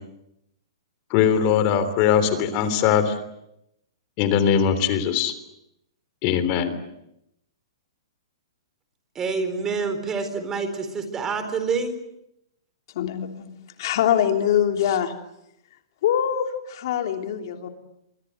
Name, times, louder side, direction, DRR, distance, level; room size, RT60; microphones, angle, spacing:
voice 1, 1.1-3.1 4.2-5.3 6.2-6.7, left 8 dB, 35° left, 11 dB, 3.4 m, -20 dB
voice 2, 9.1-11.9, right 4 dB, 15° right, 9 dB, 4.2 m, -27 dB
voice 3, 12.9-13.5 13.8-15.1 16.0-17.7, left 9 dB, 55° left, 5 dB, 3.1 m, -23 dB
28.0 x 24.0 x 8.1 m, 0.81 s
hypercardioid pair, 145°, 3 cm